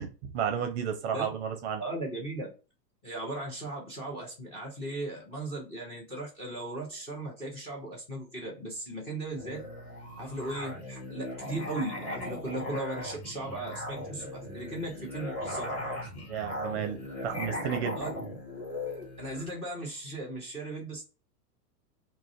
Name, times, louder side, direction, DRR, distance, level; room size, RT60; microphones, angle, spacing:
voice 1, 0.0-1.8 16.3-18.0, right 8 dB, 45° right, 0.5 m, -32 dB
voice 2, 1.8-2.5 3.0-9.7 10.2-15.7 18.0-18.1 19.2-21.0, right 2 dB, 15° left, 0.5 m, -37 dB
Musical instrument, 9.3-19.5, left 1 dB, 30° left, 1.0 m, -38 dB
2.4 x 2.0 x 2.5 m
supercardioid pair, 140°, 48 cm